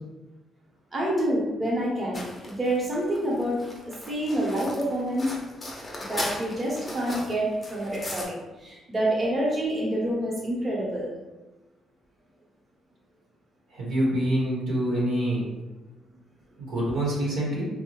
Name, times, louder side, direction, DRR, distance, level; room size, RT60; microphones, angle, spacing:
voice 1, 0.9-5.3 6.1-11.1, right 1 dB, 30° right, -4 dB, 0.8 m, -27 dB
sound 1, 2.1-8.3, left 1 dB, 30° left, 0.6 m, -37 dB
voice 2, 13.7-15.5 16.6-17.7, right 1 dB, 85° right, -4 dB, 0.9 m, -26 dB
2.7 x 2.0 x 3.0 m, 1.1 s
cardioid pair, 90°, 0 cm